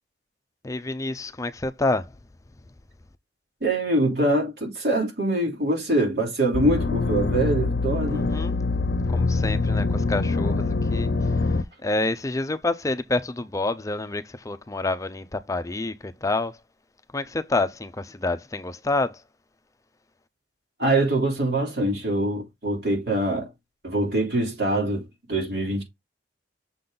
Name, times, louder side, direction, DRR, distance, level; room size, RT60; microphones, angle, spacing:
voice 1, 0.6-2.1 8.1-8.6 9.1-11.1 11.4-11.5 11.8-16.6 17.1-19.2, left 2 dB, 20° left, 0.5 m, -28 dB
voice 2, 3.6-8.3 20.8-23.5 23.8-25.8, right 1 dB, 65° right, 3.3 m, -24 dB
sound 1, 6.5-11.6, left 3 dB, 65° left, 0.6 m, -24 dB
6.7 x 3.9 x 3.8 m
head